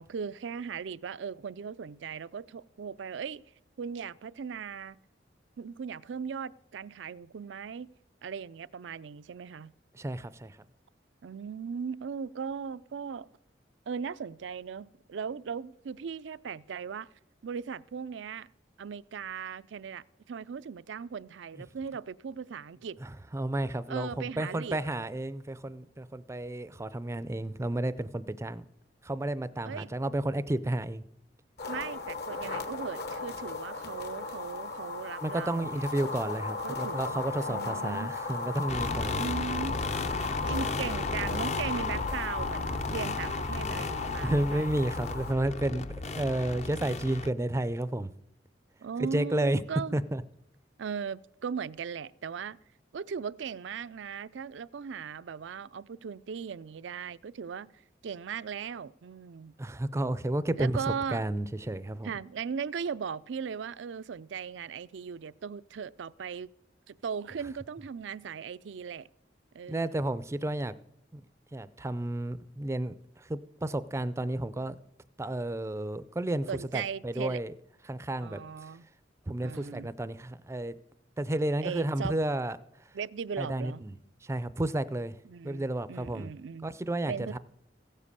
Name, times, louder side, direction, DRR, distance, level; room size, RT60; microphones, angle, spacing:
voice 1, 0.0-3.4 3.8-5.0 5.6-7.9 8.2-9.7 11.2-13.3 13.9-17.1 17.4-18.5 18.8-23.0 23.9-24.8 29.6-29.9 31.7-35.8 36.6-38.1 39.1-39.8 40.4-44.6 48.8-50.0 50.8-52.6 52.9-57.7 58.0-59.5 60.6-61.2 62.0-66.5 66.9-69.1 69.5-70.0 76.5-77.4 78.2-78.9 79.4-79.9 81.6-82.2 82.9-83.8 85.3-86.7 87.1-87.4, right 6 dB, 80° right, 0.4 m, -38 dB
voice 2, 9.9-10.6 21.5-21.6 23.0-24.1 24.4-28.6 29.0-31.0 35.2-39.2 44.2-48.1 49.0-49.6 49.9-50.2 59.6-60.8 61.1-62.1 69.7-70.7 71.1-71.2 71.5-74.8 75.2-77.5 77.9-78.4 79.3-80.8 81.2-82.6 83.4-83.9 84.2-85.2 85.4-86.3 86.6-87.4, right 1 dB, 15° right, 0.4 m, -31 dB
sound 1, 31.6-45.3, left 4 dB, 60° left, 1.2 m, -36 dB
sound 2, 38.7-47.3, left 3 dB, 40° left, 0.5 m, -35 dB
15.5 x 7.4 x 6.7 m
head